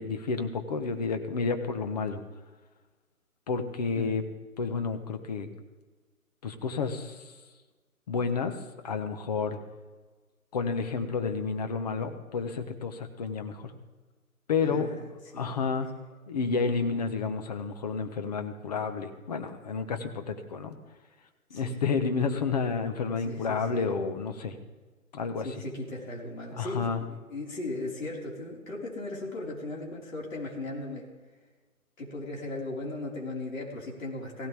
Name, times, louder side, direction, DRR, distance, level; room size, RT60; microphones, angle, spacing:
voice 1, 0.0-2.2 3.5-4.2 4.6-5.5 6.4-7.2 8.1-8.6 8.8-9.6 10.5-13.7 14.5-14.9 15.3-16.0 16.3-20.7 21.5-24.5 25.1-25.5 26.6-27.0, left 5 dB, 25° left, 7 dB, 1.1 m, -30 dB
voice 2, 14.6-15.7 21.5-21.8 23.2-23.9 25.4-31.1 32.0-34.5, left 2 dB, 60° left, -2 dB, 4.8 m, -37 dB
17.0 x 16.5 x 3.5 m, 1.3 s
figure-of-eight pair, 155°, 44 cm